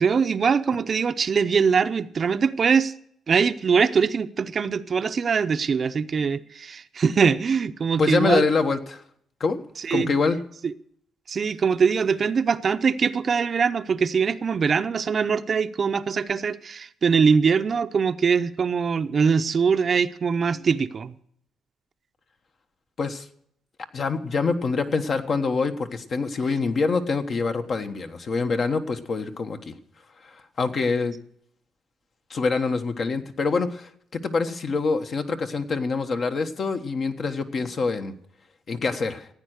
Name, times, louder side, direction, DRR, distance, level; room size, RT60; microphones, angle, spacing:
voice 1, 0.0-2.9 3.3-8.4 9.8-10.1 10.6-10.7 11.3-21.1, right 6 dB, 45° right, 0.7 m, -22 dB
voice 2, 8.0-9.0 9.4-9.6 9.9-10.4 23.0-23.3 23.9-29.7 30.2-31.1 32.3-38.1 38.7-39.3, left 4 dB, 50° left, 1.3 m, -25 dB
15.5 x 9.0 x 6.5 m
cardioid pair, 90°, 0 cm